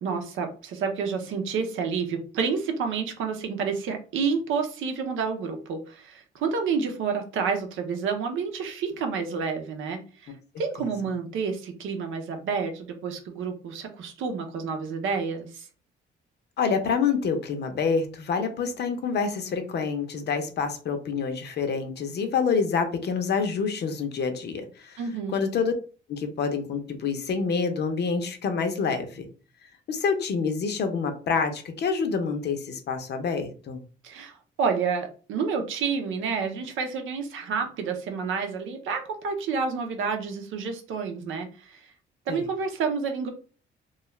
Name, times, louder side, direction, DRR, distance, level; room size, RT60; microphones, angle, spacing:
voice 1, 0.0-15.7 25.0-25.4 34.0-41.8 42.3-43.3, right 5 dB, 80° right, 4 dB, 0.7 m, -29 dB
voice 2, 16.6-25.0 25.3-25.7 26.1-29.3 29.9-33.8 42.3-42.4, left 5 dB, 55° left, 6 dB, 0.7 m, -27 dB
2.4 x 2.3 x 3.1 m, 0.38 s
cardioid pair, 90°, 20 cm